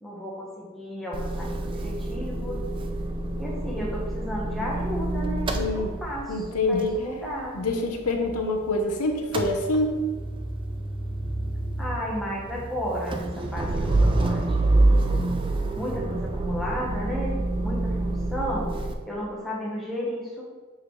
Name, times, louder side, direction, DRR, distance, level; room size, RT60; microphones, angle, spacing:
voice 1, 0.0-2.7 3.3-7.7 11.8-15.1 15.7-18.7 19.0-20.4, equal, ahead, -5 dB, 1.1 m, -33 dB
Motor vehicle (road) / Engine starting / Idling, 1.1-8.8 9.1-18.9, right 2 dB, 25° right, 0.3 m, -27 dB
voice 2, 5.5-5.9 6.3-6.9 7.5-10.0, left 2 dB, 85° left, 4 dB, 0.8 m, -26 dB
6.2 x 4.9 x 3.1 m, 1.3 s
head